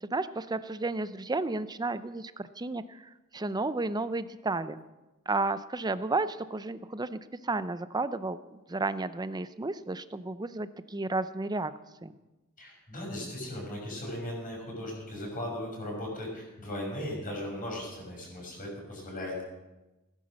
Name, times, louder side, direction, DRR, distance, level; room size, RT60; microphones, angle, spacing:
voice 1, 0.0-4.8 5.3-11.7 12.0-12.1, right 3 dB, 20° right, 14 dB, 0.6 m, -32 dB
voice 2, 12.6-19.4, left 1 dB, 40° left, -1 dB, 6.0 m, -37 dB
17.5 x 10.5 x 6.4 m, 1.1 s
head